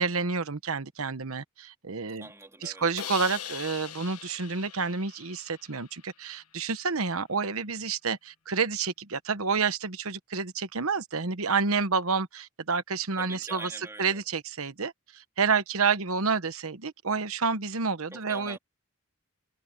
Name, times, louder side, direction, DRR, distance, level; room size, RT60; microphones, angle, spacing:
voice 1, 0.0-2.3 2.6-13.7 14.0-18.6, right 5 dB, 70° right, 1.2 m, -29 dB
voice 2, 2.2-2.9 13.2-14.2 18.1-18.6, right 2 dB, 10° right, 3.9 m, -43 dB
Crash cymbal, 3.0-6.0, left 10 dB, 85° left, 1.4 m, -41 dB
head